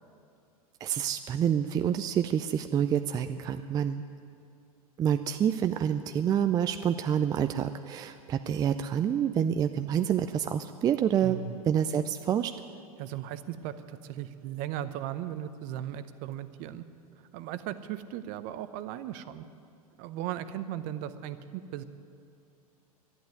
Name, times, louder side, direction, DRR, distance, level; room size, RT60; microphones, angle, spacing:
voice 1, 0.8-4.0 5.0-11.4 11.7-12.5, right 9 dB, 20° right, 9 dB, 0.4 m, -27 dB
voice 2, 11.2-11.6 13.0-16.8 17.3-19.4 20.0-21.8, right 11 dB, 45° right, 12 dB, 0.8 m, -37 dB
11.0 x 11.0 x 9.3 m, 2.5 s
hypercardioid pair, 100°, 19 cm